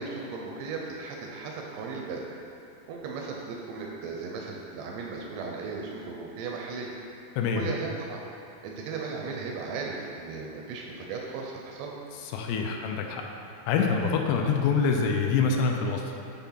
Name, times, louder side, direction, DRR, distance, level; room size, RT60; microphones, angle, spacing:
voice 1, 0.0-2.2 2.9-6.9 7.5-8.2 8.6-11.9, right 4 dB, 90° right, -1 dB, 2.9 m, -36 dB
voice 2, 7.4-7.7 12.2-13.2 13.7-16.0, left 5 dB, 80° left, 2 dB, 2.6 m, -25 dB
8.3 x 3.6 x 5.7 m, 2.7 s
omnidirectional pair, 4.8 m